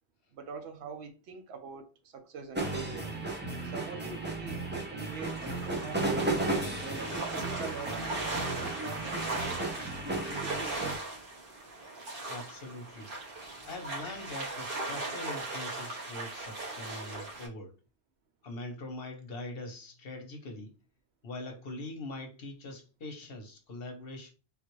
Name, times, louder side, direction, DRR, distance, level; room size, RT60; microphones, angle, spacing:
voice 1, 0.3-3.1 3.6-6.3 6.8-9.5 10.2-11.0, right 5 dB, 85° right, 0.9 m, -44 dB
sound 1, 2.6-11.0, right 2 dB, 15° right, 0.5 m, -34 dB
sound 2, 5.0-17.5, right 2 dB, 55° right, 1.3 m, -38 dB
voice 2, 12.2-13.1 13.7-17.7 18.4-20.7 21.2-24.3, left 2 dB, 65° left, 1.0 m, -42 dB
3.6 x 2.4 x 3.0 m
omnidirectional pair, 1.1 m